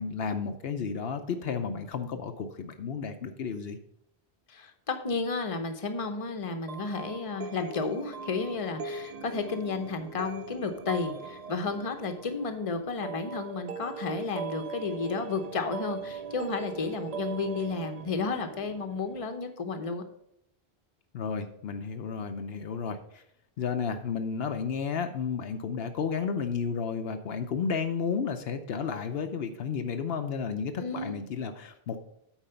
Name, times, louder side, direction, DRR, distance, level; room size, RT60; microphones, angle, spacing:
voice 1, 0.0-3.8 21.1-23.2 23.6-32.0, left 6 dB, 75° left, 7 dB, 0.9 m, -32 dB
voice 2, 4.5-20.0 30.8-31.1, left 4 dB, 35° left, 6 dB, 0.9 m, -32 dB
sound 1, 6.7-19.3, right 5 dB, 50° right, 0.5 m, -41 dB
8.9 x 4.5 x 5.7 m, 0.75 s
omnidirectional pair, 1.0 m